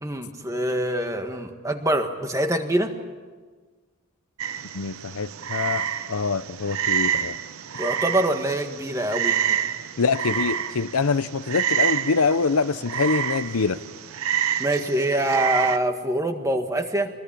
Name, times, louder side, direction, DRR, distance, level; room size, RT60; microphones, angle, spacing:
voice 1, 0.0-2.9 7.8-9.4 14.6-17.1, right 1 dB, 15° right, 5 dB, 1.7 m, -24 dB
Frog, 4.4-15.8, right 9 dB, 75° right, 0.8 m, -28 dB
voice 2, 4.7-7.4 10.0-13.8, left 4 dB, 80° left, 14 dB, 0.7 m, -24 dB
24.5 x 20.5 x 8.7 m, 1.4 s
head